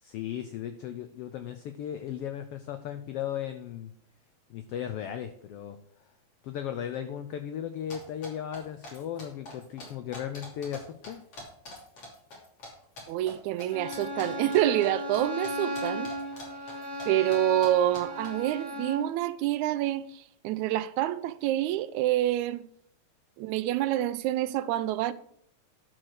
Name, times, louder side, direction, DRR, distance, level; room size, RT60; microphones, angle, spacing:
voice 1, 0.0-3.9 4.5-5.8 6.4-11.2, left 9 dB, 85° left, 1.3 m, -36 dB
sound 1, 7.9-10.8 11.0-12.7 13.0-13.3 13.6-15.2 15.4-17.0 17.3-17.4 17.6-17.7 17.9-18.3, left 2 dB, 50° left, 4.0 m, -44 dB
voice 2, 13.1-16.1 17.1-22.6 23.4-25.1, right 13 dB, 85° right, 1.9 m, -27 dB
Bowed string instrument, 13.7-19.1, equal, 20° left, 2.2 m, -36 dB
11.5 x 4.8 x 6.3 m
omnidirectional pair, 3.4 m